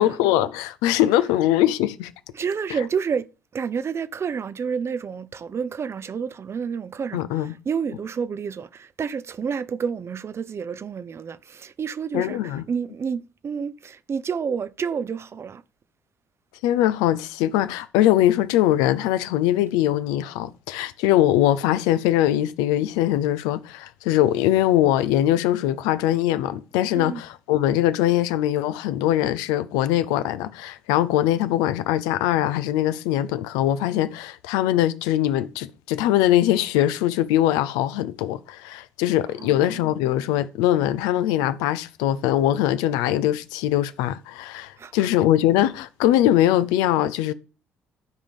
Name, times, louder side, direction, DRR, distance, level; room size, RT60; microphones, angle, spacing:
voice 1, 0.0-2.1 7.1-7.5 12.1-12.6 16.6-47.3, left 13 dB, 75° left, 0.7 m, -22 dB
voice 2, 2.3-15.6 26.9-27.2 39.4-39.8 44.8-45.1, right 6 dB, 40° right, 0.7 m, -29 dB
12.0 x 5.2 x 5.4 m
hypercardioid pair, 50°, 7 cm